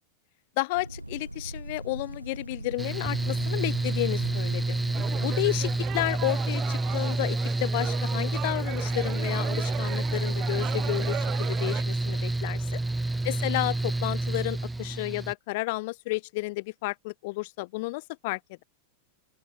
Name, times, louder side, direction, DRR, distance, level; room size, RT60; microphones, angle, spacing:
voice 1, 0.6-4.8 5.2-12.8 13.2-18.6, left 23 dB, 50° left, 0.7 m, -32 dB
sound 1, 0.7-5.8, right 1 dB, 85° right, 6.0 m, -40 dB
Mechanical fan, 2.8-15.3, right 2 dB, 5° right, 2.0 m, -29 dB
sound 2, 4.9-11.8, right 13 dB, 30° right, 4.4 m, -38 dB
open air
figure-of-eight pair, 90°, 0 cm